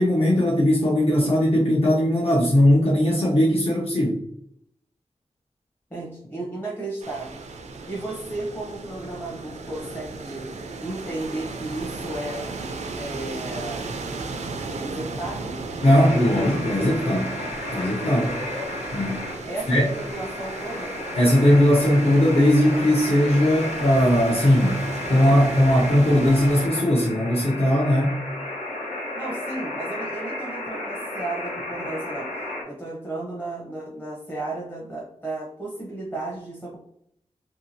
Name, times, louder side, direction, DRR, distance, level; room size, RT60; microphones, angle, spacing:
voice 1, 0.0-4.2 15.8-17.3 17.7-18.4 18.9-19.3 19.7-19.9 21.2-24.8 25.1-28.2, left 1 dB, 55° left, -5 dB, 0.7 m, -19 dB
voice 2, 5.9-7.4 7.9-10.4 10.8-12.5 13.0-13.9 14.6-15.6 19.5-21.0 29.1-32.3 32.6-36.8, right 2 dB, 15° left, -3 dB, 0.7 m, -34 dB
sound 1, 7.0-26.7, right 3 dB, 70° right, 0.4 m, -35 dB
sound 2, 15.8-32.6, left 1 dB, 80° left, 1.0 m, -33 dB
2.8 x 2.7 x 2.7 m, 0.71 s
wide cardioid pair, 85°, 12 cm